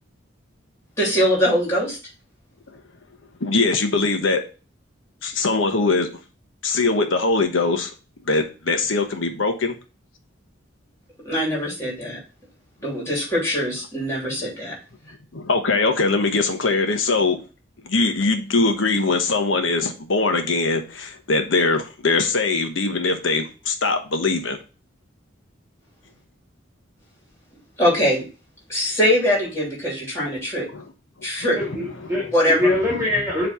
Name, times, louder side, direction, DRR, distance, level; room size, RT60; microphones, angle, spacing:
voice 1, 1.0-2.0 11.2-12.2 12.8-14.8 27.8-28.2 28.7-30.7 31.2-31.6 32.3-32.7, equal, 15° left, -4 dB, 2.8 m, -22 dB
voice 2, 3.4-4.4 5.2-6.1 6.6-7.9 8.3-9.8 15.3-17.4 17.8-24.6 30.7-30.8 32.0-32.2, left 3 dB, 85° left, 6 dB, 1.1 m, -21 dB
voice 3, 31.5-33.5, left 1 dB, 15° right, -7 dB, 2.1 m, -23 dB
7.0 x 3.3 x 4.3 m, 0.33 s
head